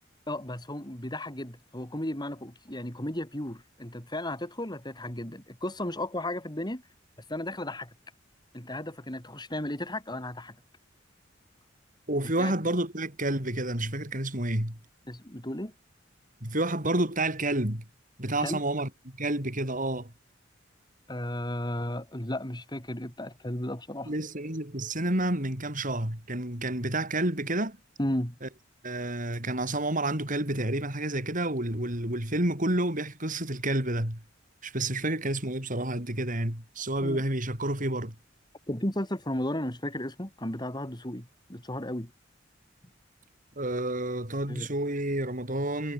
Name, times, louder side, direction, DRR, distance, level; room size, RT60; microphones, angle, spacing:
voice 1, 0.3-6.8 7.3-7.9 8.5-10.6 12.2-12.5 15.1-15.7 18.4-18.6 21.1-24.1 28.0-28.4 37.0-37.2 38.7-42.1 44.5-44.7, left 1 dB, 20° left, 4.7 m, -34 dB
voice 2, 12.1-14.8 16.4-17.8 18.2-20.1 24.1-27.8 28.4-28.5 28.8-34.2 34.6-38.1 43.6-45.9, right 1 dB, 45° right, 7.7 m, -29 dB
head